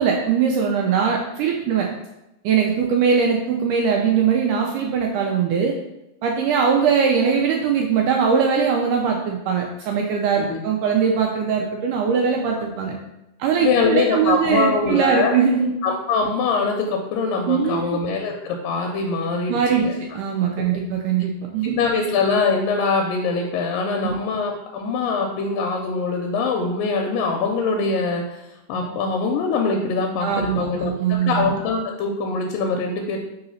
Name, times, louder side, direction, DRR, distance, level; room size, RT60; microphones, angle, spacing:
voice 1, 0.0-1.9 2.4-5.7 6.2-13.0 13.4-15.7 17.5-18.0 19.5-19.9 20.1-21.8 24.0-24.2 30.2-31.5, right 6 dB, 85° right, 1 dB, 1.9 m, -21 dB
voice 2, 13.6-15.4 15.8-20.0 21.6-28.4 28.7-33.2, left 4 dB, 80° left, 2 dB, 2.1 m, -23 dB
4.8 x 3.9 x 5.4 m, 0.90 s
omnidirectional pair, 4.2 m